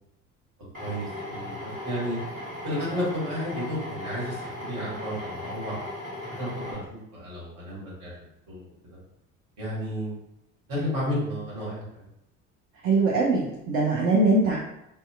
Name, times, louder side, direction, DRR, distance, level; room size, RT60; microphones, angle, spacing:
Drill, 0.7-6.7, left 1 dB, 90° right, 0.9 m, -37 dB
voice 1, 0.8-1.6 1.8-2.2 2.6-5.7 6.3-8.1 8.5-8.6 8.9-9.0 9.6-10.2 10.7-11.8, equal, 50° right, -6 dB, 1.4 m, -32 dB
voice 2, 12.8-14.6, right 2 dB, 35° right, -5 dB, 0.5 m, -22 dB
2.7 x 2.1 x 2.3 m, 0.82 s
figure-of-eight pair, 55°, 40 cm